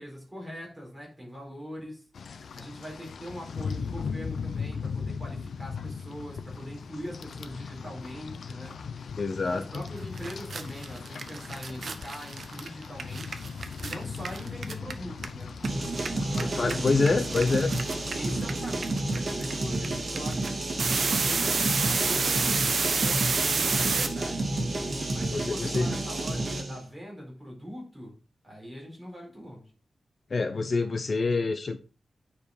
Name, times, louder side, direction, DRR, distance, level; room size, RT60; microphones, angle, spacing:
voice 1, 0.0-2.0 2.5-8.8 9.4-13.4 13.8-15.5 16.3-17.2 18.2-20.6 21.0-24.5 25.1-28.2 28.4-29.7, equal, 5° right, 4.4 m, -42 dB
Rain, 2.1-18.5, left 5 dB, 80° left, 0.6 m, -38 dB
voice 2, 9.2-9.8 16.4-17.7 25.3-25.9 30.3-31.9, left 4 dB, 45° left, 0.6 m, -27 dB
sound 1, 9.9-10.0 10.2-15.7 15.9-24.1, right 4 dB, 55° right, 1.0 m, -29 dB
sound 2, 15.6-26.8, right 2 dB, 40° right, 2.1 m, -30 dB
9.2 x 5.1 x 4.9 m
wide cardioid pair, 150°, 0 cm